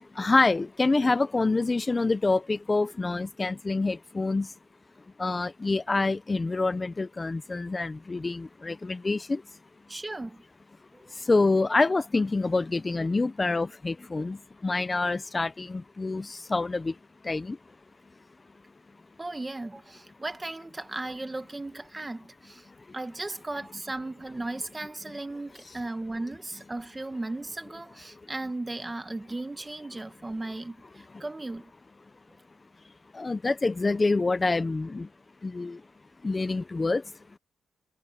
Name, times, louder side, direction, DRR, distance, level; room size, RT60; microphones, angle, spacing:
voice 1, 0.2-4.5 5.2-9.4 11.3-14.4 14.6-16.9 17.2-17.6 33.1-35.1 35.4-35.8 36.2-37.0, left 3 dB, 20° left, 0.7 m, -26 dB
voice 2, 9.9-10.4 10.9-11.1 19.2-22.7 22.9-31.6, right 2 dB, 15° right, 1.3 m, -36 dB
cardioid pair, 130°, 0 cm